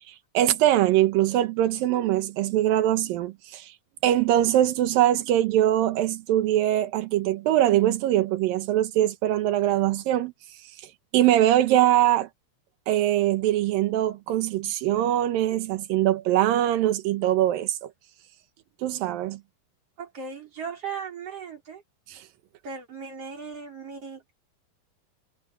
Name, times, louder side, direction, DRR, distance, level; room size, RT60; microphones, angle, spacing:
voice 1, 0.0-3.7 4.0-10.8 11.1-12.3 12.9-17.9 18.8-19.4 22.1-22.2, right 13 dB, 85° right, 2.8 m, -22 dB
voice 2, 20.0-21.8 22.6-24.4, right 5 dB, 45° right, 5.7 m, -37 dB
omnidirectional pair, 4.0 m